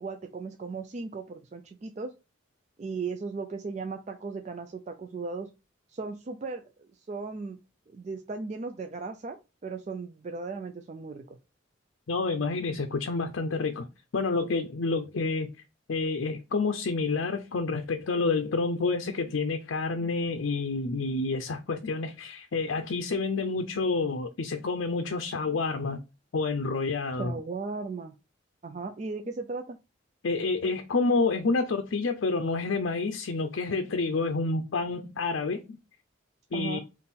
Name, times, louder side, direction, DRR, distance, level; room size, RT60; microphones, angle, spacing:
voice 1, 0.0-2.1 2.8-5.5 5.9-7.6 7.9-9.4 9.6-11.4 27.2-28.2 28.6-29.8 36.5-36.8, right 4 dB, 35° right, 0.3 m, -36 dB
voice 2, 12.1-13.9 14.1-15.5 15.9-26.0 26.3-27.3 30.2-35.8 36.5-36.8, left 3 dB, 75° left, 0.5 m, -28 dB
4.1 x 2.5 x 3.6 m
head